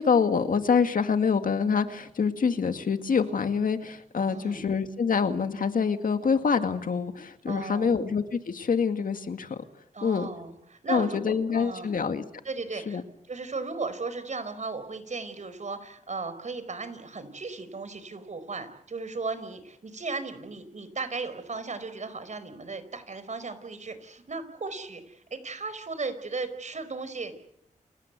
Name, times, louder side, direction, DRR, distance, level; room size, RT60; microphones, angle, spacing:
voice 1, 0.0-9.6 10.0-10.3 10.9-12.2 12.9-13.0, left 6 dB, 75° left, 8 dB, 2.1 m, -26 dB
voice 2, 4.3-4.7 7.5-8.0 9.9-12.0 12.4-27.3, right 4 dB, 55° right, 12 dB, 4.8 m, -36 dB
29.5 x 17.0 x 8.3 m, 0.72 s
cardioid pair, 65°, 14 cm